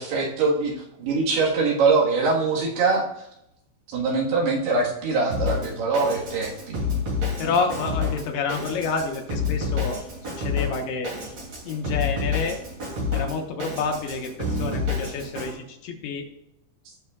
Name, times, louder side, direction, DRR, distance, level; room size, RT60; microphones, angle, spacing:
voice 1, 0.0-3.3 3.9-6.8 7.4-7.6, right 4 dB, 70° right, -2 dB, 3.5 m, -23 dB
Drum kit, 5.3-15.5, left 4 dB, 40° right, 3.5 m, -29 dB
voice 2, 7.4-11.1 11.6-12.6 13.1-16.3, left 4 dB, 75° left, 2 dB, 3.0 m, -29 dB
17.0 x 6.2 x 2.4 m, 0.80 s
omnidirectional pair, 4.8 m